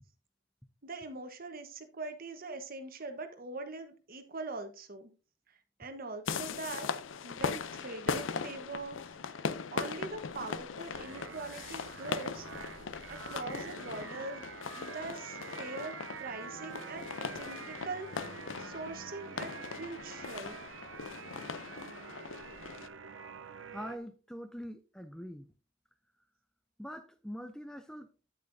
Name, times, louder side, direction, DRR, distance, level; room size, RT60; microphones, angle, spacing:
voice 1, 0.8-5.1 5.5-6.9 7.2-9.0 9.3-12.6 13.1-18.3 18.6-20.6, right 3 dB, 50° right, 1.2 m, -43 dB
sound 1, 6.3-22.9, left 5 dB, 80° left, 0.6 m, -40 dB
sound 2, 10.9-24.0, right 6 dB, 75° right, 0.7 m, -47 dB
voice 2, 23.7-25.5 26.8-28.1, equal, 5° left, 0.4 m, -43 dB
8.9 x 8.4 x 2.6 m
head